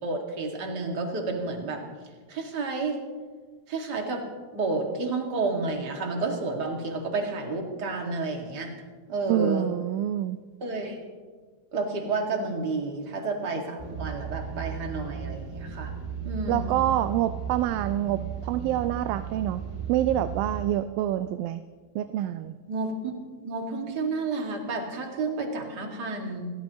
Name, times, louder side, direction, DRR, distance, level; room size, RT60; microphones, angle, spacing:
voice 1, 0.0-1.8 2.3-3.0 3.7-4.2 4.5-8.7 9.1-9.7 10.6-11.0 11.7-15.9 16.2-16.7 22.7-23.1 23.4-26.5, right 3 dB, 35° right, 1 dB, 2.3 m, -30 dB
voice 2, 9.3-10.4 16.5-19.6 19.9-21.6 22.0-22.6, right 12 dB, 85° right, 11 dB, 2.3 m, -26 dB
sound 1, 13.8-20.6, right 7 dB, 10° right, 1.6 m, -35 dB
29.5 x 14.0 x 3.1 m, 1.5 s
omnidirectional pair, 4.1 m